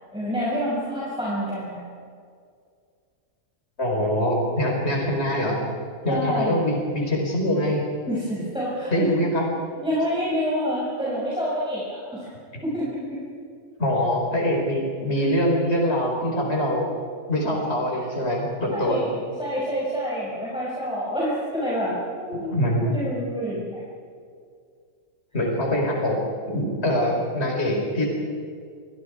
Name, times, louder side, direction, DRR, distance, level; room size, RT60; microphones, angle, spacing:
voice 1, 0.1-1.8 6.1-6.6 8.1-9.1 9.8-11.8 12.1-12.3 12.6-13.2 15.2-15.3 18.7-22.6 22.8-23.8, equal, 5° right, -8 dB, 6.7 m, -27 dB
voice 2, 3.8-5.6 6.0-7.8 8.9-9.5 13.8-16.9 17.3-19.0 22.3-22.9 25.3-26.2 26.5-28.1, equal, 45° left, 0 dB, 4.6 m, -23 dB
30.0 x 25.0 x 4.9 m, 2.2 s
omnidirectional pair, 1.5 m